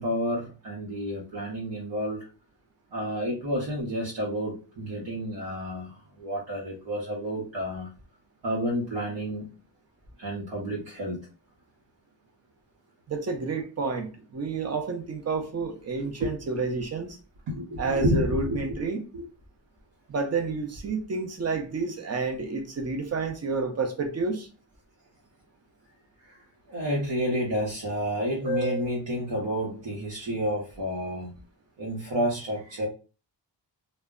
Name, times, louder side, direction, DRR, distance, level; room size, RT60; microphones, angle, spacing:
voice 1, 0.0-2.3 2.9-7.9 8.4-9.5 10.2-11.2 16.0-16.1 17.5-18.6 19.1-19.2 26.2-26.4 26.7-31.3 31.8-32.9, equal, 90° right, 0.9 m, -30 dB
voice 2, 13.1-17.2 17.8-19.0 20.1-24.5, right 4 dB, 35° right, 0.6 m, -30 dB
2.1 x 2.1 x 3.5 m
wide cardioid pair, 170°, 43 cm